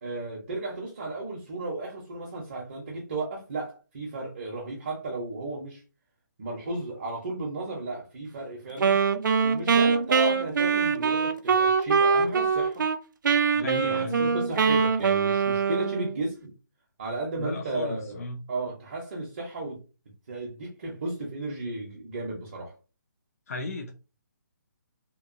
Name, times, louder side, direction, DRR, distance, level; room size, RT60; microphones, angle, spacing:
voice 1, 0.0-5.8 6.4-9.0 9.4-12.8 13.5-16.5 17.0-18.0 18.5-19.8 20.3-22.8, right 2 dB, 35° right, 0.6 m, -34 dB
Wind instrument woodwind instrument, 8.8-13.0 13.2-16.2, right 5 dB, 80° right, 0.4 m, -23 dB
voice 2, 13.6-14.3 17.4-18.4 23.5-23.9, left 3 dB, 50° left, 0.4 m, -35 dB
2.9 x 2.2 x 2.5 m
hypercardioid pair, 175°, 10 cm